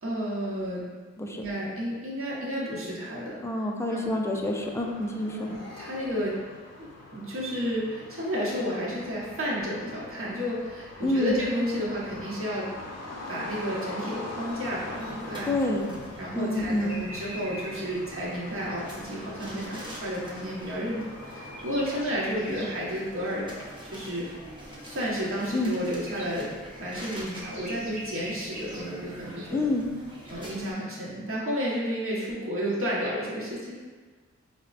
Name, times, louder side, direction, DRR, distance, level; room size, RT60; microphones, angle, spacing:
voice 1, 0.0-0.8 1.3-4.1 5.3-6.3 6.8-12.7 13.3-15.5 16.2-23.5 23.9-24.4 24.8-26.5 26.8-29.7 30.3-33.8, equal, 45° right, -6 dB, 0.9 m, -32 dB
voice 2, 3.4-5.5 11.0-11.3 15.5-15.9 16.3-17.0 25.5-25.7 29.5-29.9, left 1 dB, 10° left, 0 dB, 0.4 m, -27 dB
sound 1, 4.3-22.0, left 2 dB, 60° left, 0.5 m, -43 dB
sound 2, 14.1-30.7, right 1 dB, 15° right, 0.7 m, -45 dB
sound 3, 16.5-17.9 20.5-22.8 25.4-29.6 32.3-32.4 32.5-33.1, right 1 dB, 75° right, 0.9 m, -44 dB
4.4 x 2.1 x 2.5 m, 1.4 s
wide cardioid pair, 75°, 29 cm